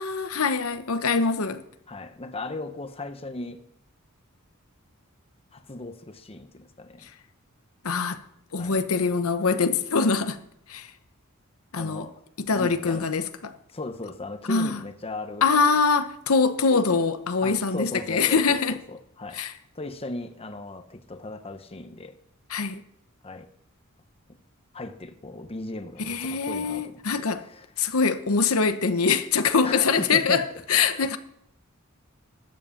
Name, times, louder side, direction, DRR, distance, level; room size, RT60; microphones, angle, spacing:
voice 1, 0.0-1.6 7.8-8.2 8.5-10.4 10.7-10.9 11.7-12.1 12.4-13.5 14.5-14.8 15.4-18.8 19.3-19.5 22.5-22.8 26.1-27.4 27.8-30.4 30.7-31.2, left 5 dB, 80° left, 0.9 m, -23 dB
voice 2, 1.9-3.6 5.5-7.1 8.5-8.8 11.8-12.2 12.5-13.1 13.7-15.5 16.9-17.0 17.4-19.4 19.7-22.1 23.2-23.5 24.7-27.7 29.6-30.5 31.0-31.1, left 2 dB, 25° left, 0.9 m, -37 dB
12.5 x 7.7 x 7.1 m
head